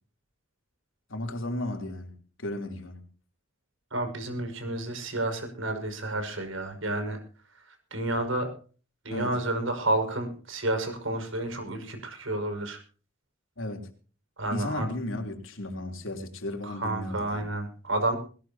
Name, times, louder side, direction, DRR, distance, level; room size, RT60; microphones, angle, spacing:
voice 1, 1.1-2.1 2.4-3.0 9.1-9.3 13.6-13.8 14.5-17.5, left 1 dB, 80° left, 3.6 m, -34 dB
voice 2, 3.9-7.2 7.5-8.5 9.0-12.8 14.4-14.9 16.6-18.2, right 1 dB, 80° right, 6.0 m, -30 dB
20.5 x 19.0 x 2.9 m
head